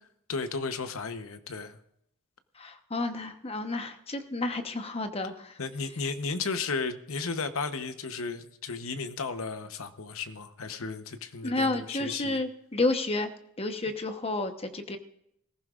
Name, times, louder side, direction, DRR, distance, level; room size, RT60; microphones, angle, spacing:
voice 1, 0.3-1.8 5.6-12.4, left 4 dB, 70° left, 9 dB, 1.0 m, -34 dB
voice 2, 2.6-5.6 11.4-13.3 13.6-15.0, left 2 dB, 25° left, 7 dB, 1.0 m, -31 dB
20.5 x 15.0 x 2.5 m, 0.76 s
head